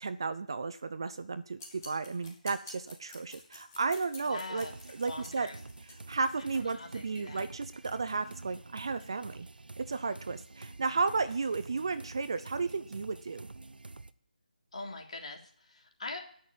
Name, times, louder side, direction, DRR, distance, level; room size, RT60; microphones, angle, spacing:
voice 1, 0.0-4.7 4.9-5.5 5.8-9.5 9.8-13.5, right 4 dB, 30° right, 12 dB, 0.6 m, -33 dB
sound 1, 1.6-6.6, left 2 dB, 20° left, 3.6 m, -50 dB
voice 2, 4.3-4.7 5.0-5.5 6.4-7.5 14.7-16.2, left 3 dB, 45° left, 2 dB, 3.2 m, -43 dB
sound 2, 4.6-14.1, right 3 dB, 85° right, 1.0 m, -48 dB
17.5 x 6.6 x 9.4 m, 0.63 s
figure-of-eight pair, 175°, 5 cm